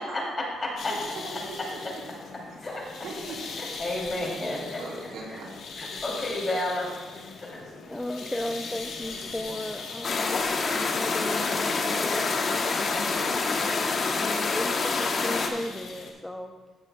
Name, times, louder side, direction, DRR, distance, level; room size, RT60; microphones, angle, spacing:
sound 1, 0.8-16.1, left 4 dB, 65° left, 1.2 m, -40 dB
voice 1, 0.9-1.8 3.0-3.4 4.8-5.5, right 3 dB, 75° right, -3 dB, 3.0 m, -39 dB
voice 2, 3.6-4.8 5.8-6.9 7.4-7.6, left 1 dB, 30° left, -2 dB, 2.9 m, -31 dB
voice 3, 7.9-10.3 10.8-12.6 13.1-16.5, left 1 dB, 10° left, 4 dB, 0.5 m, -36 dB
sound 2, 10.0-15.5, left 4 dB, 45° left, 0.9 m, -26 dB
15.5 x 6.7 x 2.3 m, 1.3 s
cardioid pair, 90°, 0 cm